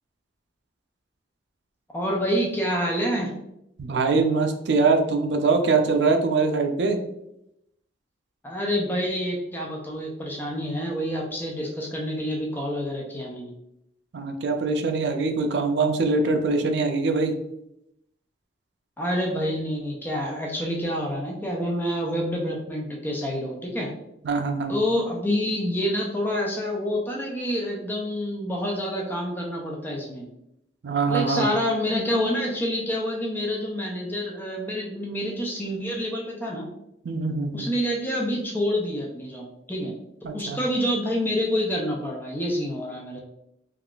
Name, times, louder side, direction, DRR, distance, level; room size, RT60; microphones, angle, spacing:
voice 1, 1.9-3.3 8.4-13.5 19.0-23.9 24.7-30.3 31.1-36.7 37.5-39.9 40.3-43.2, equal, 10° left, -1 dB, 0.4 m, -27 dB
voice 2, 3.8-7.0 14.1-17.3 24.2-24.7 30.8-31.5 37.0-37.7 40.2-40.6, right 4 dB, 70° right, 5 dB, 0.4 m, -23 dB
3.6 x 2.3 x 2.3 m, 0.82 s
head